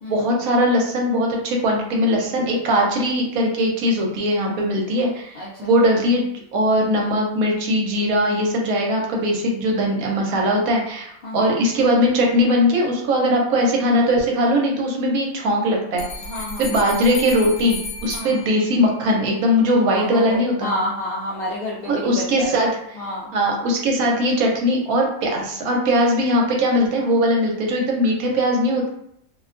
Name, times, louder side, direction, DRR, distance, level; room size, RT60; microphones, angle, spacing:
voice 1, 0.1-6.2 6.5-16.0 16.6-20.8 21.9-22.7 23.3-28.9, equal, 75° right, 0 dB, 1.1 m, -20 dB
voice 2, 5.4-5.7 11.2-11.5 16.2-16.8 18.1-18.5 19.9-23.3, left 1 dB, 90° left, -5 dB, 0.5 m, -30 dB
sound 1, 16.0-19.1, left 3 dB, 70° left, 0.9 m, -34 dB
2.6 x 2.2 x 2.4 m, 0.73 s
omnidirectional pair, 1.5 m